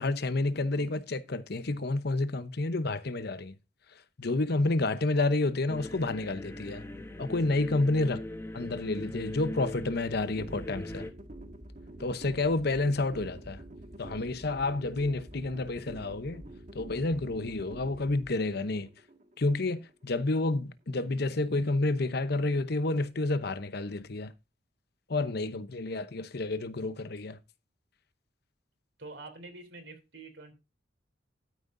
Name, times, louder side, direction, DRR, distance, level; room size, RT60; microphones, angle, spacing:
voice 1, 0.0-3.5 4.2-6.8 7.2-8.2 8.5-11.1 12.0-13.6 14.0-16.4 16.7-18.9 19.4-24.3 25.1-27.4, left 2 dB, 55° left, 0.8 m, -29 dB
sound 1, 5.7-11.1, left 1 dB, 15° left, 1.1 m, -40 dB
sound 2, 10.2-20.2, right 1 dB, 40° right, 1.7 m, -47 dB
voice 2, 29.0-30.5, right 3 dB, 65° right, 3.4 m, -46 dB
12.5 x 9.3 x 2.6 m
head